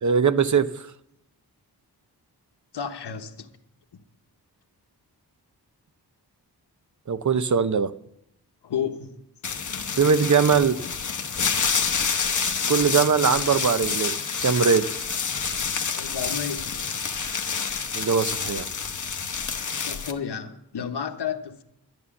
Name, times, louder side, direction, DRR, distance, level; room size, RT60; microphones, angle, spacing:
voice 1, 0.0-0.7 7.1-7.9 10.0-10.8 12.7-14.2 14.4-15.0 17.9-18.7, right 6 dB, 45° right, 0.7 m, -21 dB
voice 2, 2.7-3.5 8.6-9.2 15.9-16.8 19.9-21.6, left 7 dB, 80° left, 1.1 m, -31 dB
sound 1, 9.4-20.1, left 5 dB, 45° left, 1.0 m, -28 dB
11.5 x 10.5 x 7.1 m
wide cardioid pair, 110°, 40 cm